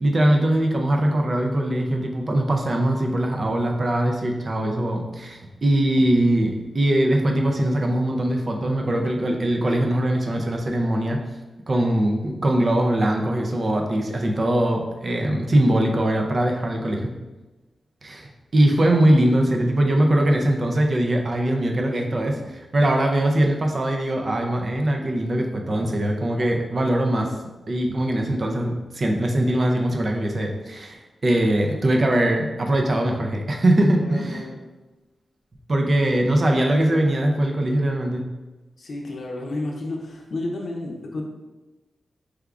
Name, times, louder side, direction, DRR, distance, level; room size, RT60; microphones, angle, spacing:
voice 1, 0.0-11.2 11.7-17.1 18.0-27.3 27.7-34.4 35.7-38.3, right 1 dB, 35° right, 2 dB, 0.5 m, -21 dB
voice 2, 34.0-34.6 38.8-41.2, left 2 dB, 60° left, 0 dB, 0.6 m, -31 dB
4.8 x 3.4 x 2.4 m, 1.1 s
wide cardioid pair, 160°, 0 cm